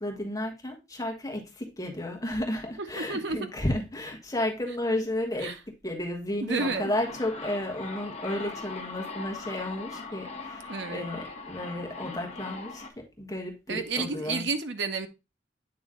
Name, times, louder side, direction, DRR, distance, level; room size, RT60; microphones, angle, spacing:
voice 1, 0.0-5.6 5.8-14.4, left 1 dB, 20° left, 1.2 m, -33 dB
voice 2, 2.8-3.5 5.4-5.5 6.4-6.9 10.7-11.1 13.7-15.1, right 4 dB, 65° right, 0.8 m, -31 dB
sound 1, 6.3-12.9, left 3 dB, 35° left, 0.9 m, -40 dB
8.6 x 3.1 x 3.6 m
head